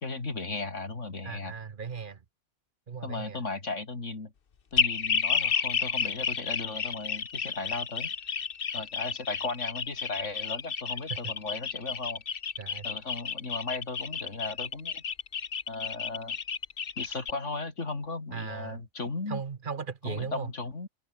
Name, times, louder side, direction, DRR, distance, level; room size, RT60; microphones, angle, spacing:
voice 1, 0.0-1.5 3.0-4.3 4.7-8.1 8.7-12.2 12.8-15.0 15.7-16.4 17.0-19.4 20.1-20.9, left 3 dB, 85° left, 3.5 m, -36 dB
voice 2, 1.2-2.2 2.9-3.4 11.1-11.3 12.6-12.9 18.3-18.8 19.3-20.5, right 6 dB, 45° right, 1.1 m, -37 dB
sound 1, 4.8-17.3, left 6 dB, 50° left, 1.2 m, -31 dB
omnidirectional pair, 1.2 m